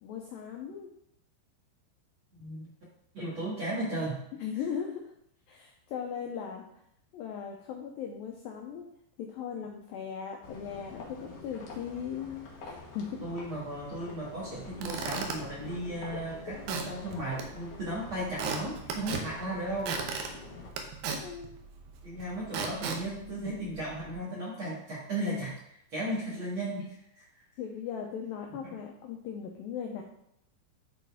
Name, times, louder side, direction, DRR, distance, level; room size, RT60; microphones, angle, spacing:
voice 1, 0.0-0.9 4.4-5.1 5.5-6.6 7.1-8.9 9.2-13.2 16.1-16.6 21.2-21.5 27.6-30.0, left 7 dB, 85° left, 2 dB, 2.0 m, -38 dB
voice 2, 3.1-4.2 13.2-20.1 22.0-27.2 28.6-28.7, right 1 dB, 55° right, -7 dB, 1.4 m, -35 dB
sound 1, 10.4-20.7, left 3 dB, 65° left, 2.0 m, -47 dB
Squeak / Wood, 14.5-24.1, right 5 dB, 75° right, 2.1 m, -39 dB
11.0 x 4.2 x 3.5 m, 0.73 s
omnidirectional pair, 5.0 m